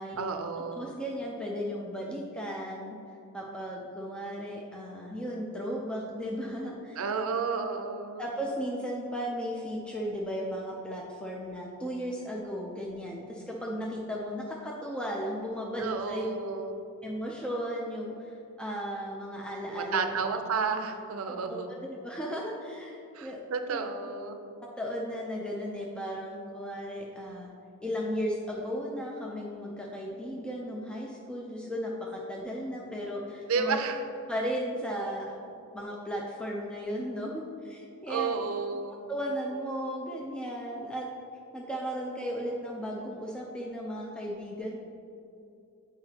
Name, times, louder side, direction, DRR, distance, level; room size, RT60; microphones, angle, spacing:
voice 1, 0.2-0.9 7.0-8.3 15.8-16.8 19.7-21.7 23.1-24.4 33.4-34.0 38.1-39.1, right 5 dB, 75° right, 7 dB, 0.5 m, -32 dB
voice 2, 0.7-2.9 3.3-7.0 8.2-16.3 17.0-20.4 21.3-23.4 23.7-23.8 24.6-27.5 27.8-33.8 34.3-35.4 35.7-38.4 39.1-41.1 41.5-44.8, equal, 5° left, -3 dB, 0.5 m, -35 dB
8.6 x 4.8 x 2.8 m, 2.7 s
head